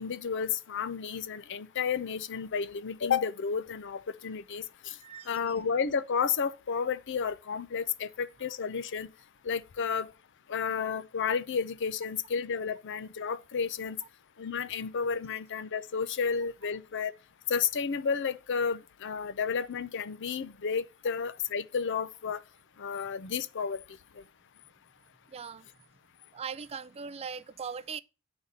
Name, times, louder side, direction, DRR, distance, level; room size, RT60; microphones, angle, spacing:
voice 1, 0.0-5.0 5.3-9.1 9.4-10.1 10.5-14.0 14.4-17.1 17.5-22.4 22.8-23.8, left 6 dB, 55° left, 0.6 m, -32 dB
voice 2, 5.0-5.5 25.3-25.7 26.3-28.0, right 6 dB, 30° right, 0.4 m, -40 dB
8.7 x 4.0 x 6.6 m
head